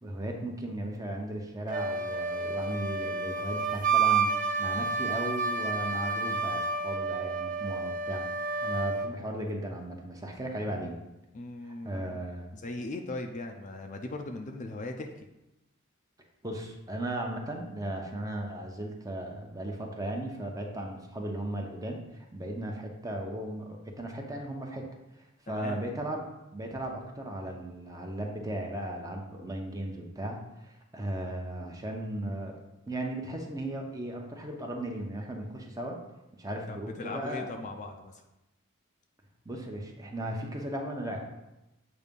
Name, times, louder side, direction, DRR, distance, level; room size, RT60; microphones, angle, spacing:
voice 1, 0.0-8.3 8.6-11.0 11.8-12.5 16.4-24.9 25.5-32.6 32.9-36.0 36.4-37.5 39.4-41.3, right 1 dB, 15° right, 1 dB, 0.8 m, -36 dB
Wind instrument woodwind instrument, 1.7-9.1, right 4 dB, 40° right, 0.4 m, -30 dB
voice 2, 11.3-12.2 12.5-15.1 25.5-25.8 36.7-38.2, left 2 dB, 35° left, 4 dB, 0.4 m, -39 dB
8.1 x 2.7 x 5.3 m, 0.95 s
head